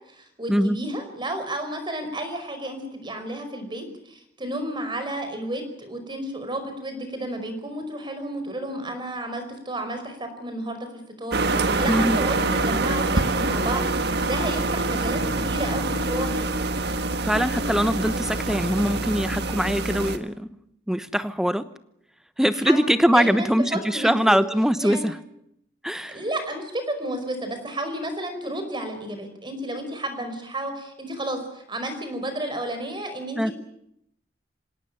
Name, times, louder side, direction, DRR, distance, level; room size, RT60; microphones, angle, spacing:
voice 1, 0.1-10.9 11.2-13.9 14.3-16.3 22.6-24.3 24.8-25.1 26.1-33.5, right 1 dB, 25° right, 7 dB, 5.0 m, -32 dB
sound 1, 11.3-20.2, right 2 dB, 60° right, 1.6 m, -25 dB
voice 2, 11.9-12.2 17.3-20.5 20.9-21.6 22.4-25.2 25.8-26.2 33.3-33.5, equal, 5° right, 12 dB, 1.0 m, -22 dB
26.0 x 17.5 x 9.0 m, 0.78 s
head